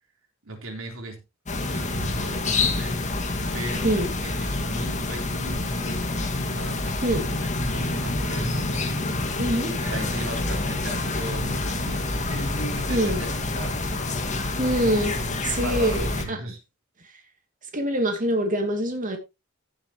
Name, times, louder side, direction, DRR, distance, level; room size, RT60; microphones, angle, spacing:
voice 1, 0.4-1.2 1.5-3.2 3.5-9.1 9.8-14.0 15.0-16.6, right 1 dB, 80° right, 3.8 m, -37 dB
sound 1, 1.5-16.2, left 2 dB, 35° left, 2.0 m, -27 dB
voice 2, 7.0-7.5 9.4-9.7 12.9-13.2 14.6-15.1 15.4-16.4 17.7-19.2, right 1 dB, 40° right, 2.5 m, -24 dB
15.0 x 7.5 x 3.0 m
head